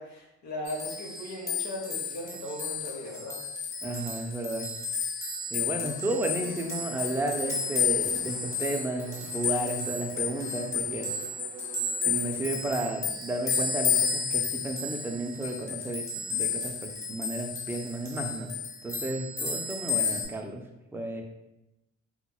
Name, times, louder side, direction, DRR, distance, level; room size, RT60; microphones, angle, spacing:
voice 1, 0.0-3.4, left 1 dB, 65° left, -1 dB, 0.8 m, -38 dB
sound 1, 0.7-20.2, left 6 dB, 10° left, 1.0 m, -32 dB
voice 2, 3.8-4.7 5.5-11.3 12.0-16.0 16.3-18.5 18.8-20.6 20.9-21.2, right 1 dB, 10° right, 2 dB, 0.3 m, -33 dB
Bowed string instrument, 5.7-13.1, right 5 dB, 80° right, 0.6 m, -45 dB
2.8 x 2.7 x 2.2 m, 0.91 s
cardioid pair, 90°, 30 cm